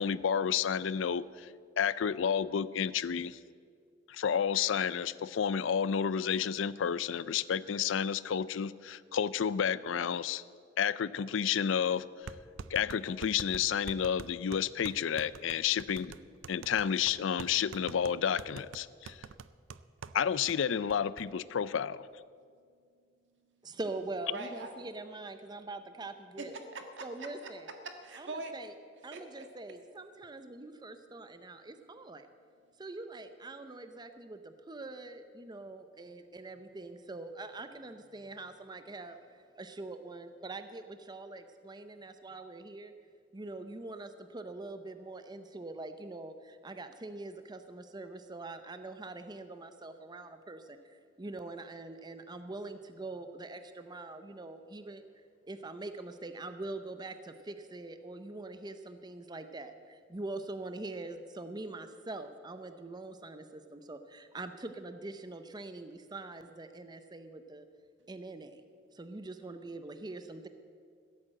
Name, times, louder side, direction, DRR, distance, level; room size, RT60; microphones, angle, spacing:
voice 1, 0.0-1.5 1.8-3.4 4.1-10.4 10.8-12.0 12.7-16.1 16.5-19.2 20.1-22.1, left 8 dB, 75° left, 18 dB, 0.4 m, -31 dB
sound 1, 11.3-11.4 12.3-20.2 20.5-20.6 20.9-21.2, right 5 dB, 85° right, 0.5 m, -46 dB
voice 2, 23.6-26.5 27.0-27.7 28.2-28.7 29.0-32.3 32.8-42.9 43.3-67.7 68.1-68.6 68.9-70.5, right 2 dB, 20° right, 9 dB, 0.6 m, -44 dB
voice 3, 24.3-24.7 26.4-27.5 27.8-28.5 29.1-29.5, right 2 dB, 65° right, 5 dB, 1.7 m, -42 dB
16.0 x 8.5 x 7.7 m, 2.1 s
head